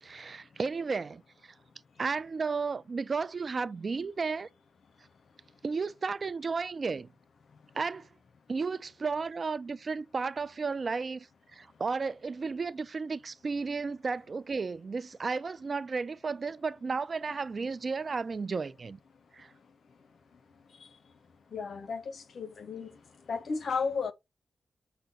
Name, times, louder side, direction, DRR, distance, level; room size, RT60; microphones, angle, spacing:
voice 1, 0.0-1.5 2.0-4.5 5.6-7.1 7.7-8.1 8.5-11.3 11.5-19.0 19.3-19.5, right 4 dB, 50° right, 0.4 m, -33 dB
voice 2, 21.5-23.0 23.3-24.1, left 5 dB, 70° left, 0.8 m, -34 dB
5.8 x 2.2 x 3.9 m
cardioid pair, 55°, 0 cm